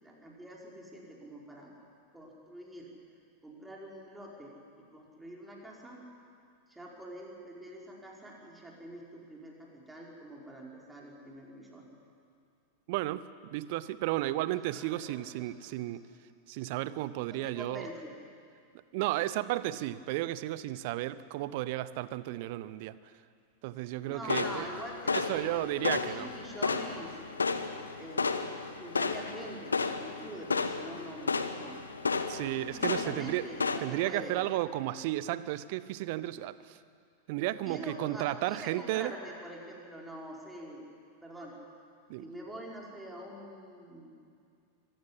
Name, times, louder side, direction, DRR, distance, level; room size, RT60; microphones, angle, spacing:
voice 1, 0.0-1.7 2.1-2.9 3.4-6.0 6.7-11.9 14.5-15.9 17.3-18.2 23.8-27.2 28.0-31.8 32.7-34.4 37.4-40.8 41.2-41.6 42.2-44.1, right 1 dB, 5° right, -2 dB, 4.9 m, -45 dB
voice 2, 12.9-16.1 16.5-17.9 18.9-23.0 23.6-24.7 25.1-26.3 32.3-33.5 33.8-36.8 37.3-39.1 42.1-42.3, right 15 dB, 50° right, 16 dB, 0.8 m, -33 dB
sound 1, 24.3-33.8, left 4 dB, 75° left, 1.1 m, -33 dB
24.0 x 15.0 x 9.8 m, 2.3 s
figure-of-eight pair, 90°, 0 cm